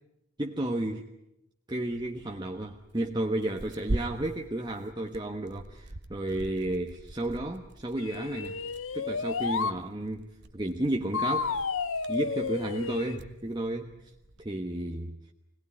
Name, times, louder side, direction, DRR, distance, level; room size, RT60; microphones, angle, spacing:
voice 1, 0.4-1.1 1.7-8.6 8.9-10.3 10.5-11.5 12.1-13.9 14.4-15.1, right 1 dB, 20° right, 2 dB, 1.2 m, -32 dB
Tearing, 1.9-14.5, right 1 dB, 55° right, 1.3 m, -43 dB
sound 1, 8.0-9.8 11.1-13.2, left 5 dB, 70° left, 0.9 m, -31 dB
25.5 x 18.5 x 9.7 m, 0.86 s
head